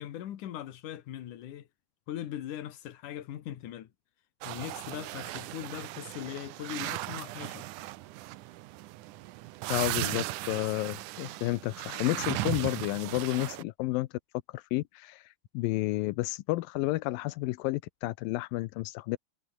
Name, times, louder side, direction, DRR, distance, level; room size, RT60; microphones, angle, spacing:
voice 1, 0.0-1.7 2.1-3.9 4.4-7.7, left 11 dB, 65° left, 2.9 m, -40 dB
sound 1, 4.4-13.6, right 17 dB, 75° right, 2.0 m, -37 dB
voice 2, 9.7-14.1 14.5-19.2, left 19 dB, 90° left, 2.4 m, -31 dB
omnidirectional pair, 4.1 m